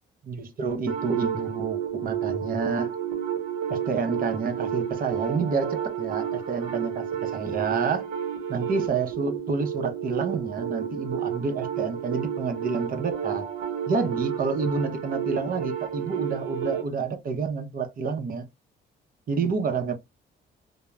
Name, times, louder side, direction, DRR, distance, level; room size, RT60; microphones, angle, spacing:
voice 1, 0.2-2.9 3.7-8.1 8.5-13.5 13.9-18.5 19.3-19.9, right 4 dB, 45° right, 0.6 m, -29 dB
sound 1, 0.9-16.9, right 9 dB, 80° right, 0.7 m, -31 dB
2.9 x 2.0 x 2.2 m
cardioid pair, 90°, 20 cm